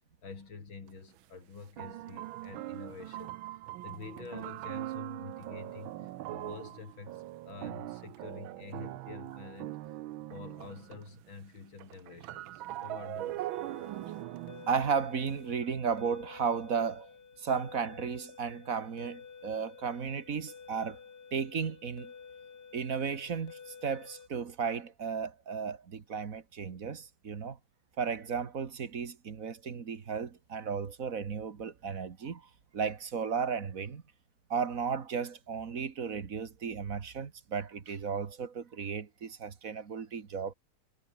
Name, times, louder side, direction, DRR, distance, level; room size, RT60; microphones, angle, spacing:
voice 1, 0.2-3.4 3.8-9.8 10.3-13.6, left 4 dB, 60° left, 4.2 m, -47 dB
sound 1, 0.9-1.0 1.8-11.3 11.5-15.4, right 15 dB, 70° right, 1.4 m, -41 dB
sound 2, 13.5-24.3, left 6 dB, 45° left, 2.4 m, -52 dB
voice 2, 14.7-17.1 17.4-21.0 21.3-22.1 22.7-27.6 28.0-34.0 34.5-40.5, right 6 dB, 40° right, 1.8 m, -34 dB
omnidirectional pair, 2.4 m